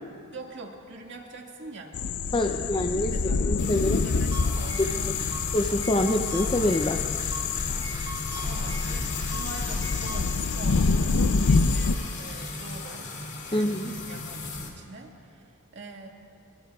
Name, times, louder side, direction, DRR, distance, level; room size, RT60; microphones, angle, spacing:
voice 1, 0.3-5.2 8.5-13.1 13.4-16.1, right 2 dB, 50° right, 0 dB, 1.9 m, -43 dB
sound 1, 1.9-11.9, left 4 dB, 75° left, 0.6 m, -27 dB
voice 2, 2.3-3.2 3.4-4.0 5.5-7.0 13.5-13.9, left 1 dB, 20° left, 4 dB, 0.5 m, -25 dB
sound 2, 3.6-14.7, left 3 dB, 50° left, 2.5 m, -36 dB
sound 3, 4.2-10.2, right 1 dB, 20° right, 1.8 m, -39 dB
24.5 x 24.5 x 2.4 m, 2.4 s
head